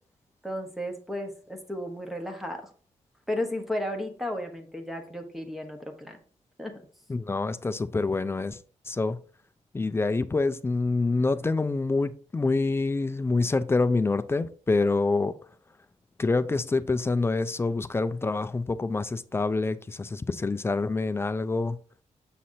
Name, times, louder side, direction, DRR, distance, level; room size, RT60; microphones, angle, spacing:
voice 1, 0.4-2.7 3.3-6.2 6.6-6.7, left 1 dB, ahead, 1.2 m, -34 dB
voice 2, 7.1-8.6 8.9-9.2 9.7-15.4 16.2-21.8, left 3 dB, 20° left, 0.4 m, -26 dB
7.5 x 5.7 x 2.8 m
wide cardioid pair, 145°, 13 cm